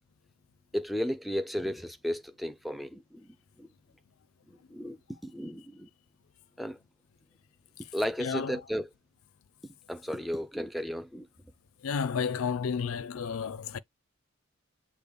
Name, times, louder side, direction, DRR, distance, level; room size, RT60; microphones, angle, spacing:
voice 1, 0.7-3.3 3.6-3.7 4.7-5.0 5.2-5.9 6.6-6.8 7.9-8.9 9.9-11.3, equal, ahead, 0.4 m, -34 dB
voice 2, 8.2-8.6 11.8-13.8, left 6 dB, 90° left, 0.4 m, -31 dB
6.6 x 2.3 x 3.4 m
head